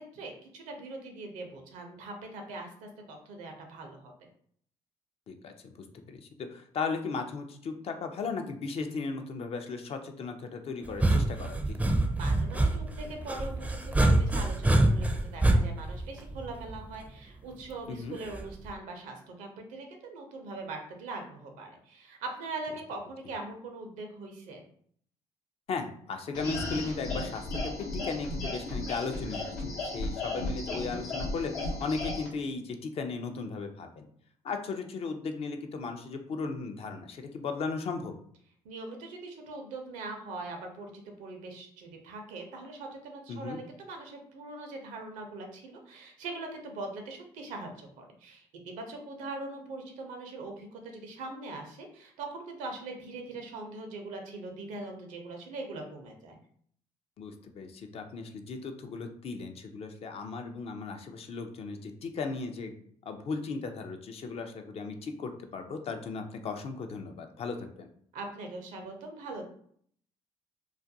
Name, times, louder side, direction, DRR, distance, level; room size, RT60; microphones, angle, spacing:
voice 1, 0.0-4.1 12.2-24.7 38.6-56.4 68.1-69.4, right 2 dB, 75° right, 4 dB, 0.5 m, -41 dB
voice 2, 5.3-5.7 6.1-11.8 17.9-18.2 25.7-34.1 34.4-38.2 43.3-43.6 57.2-62.7 63.1-67.9, left 4 dB, 50° left, 5 dB, 0.4 m, -36 dB
sound 1, 10.8-16.9 18.3-18.7, right 2 dB, 10° right, 0.4 m, -26 dB
sound 2, 26.3-32.3, left 2 dB, 85° left, 0.7 m, -35 dB
2.4 x 2.2 x 2.6 m, 0.62 s
supercardioid pair, 60°, 13 cm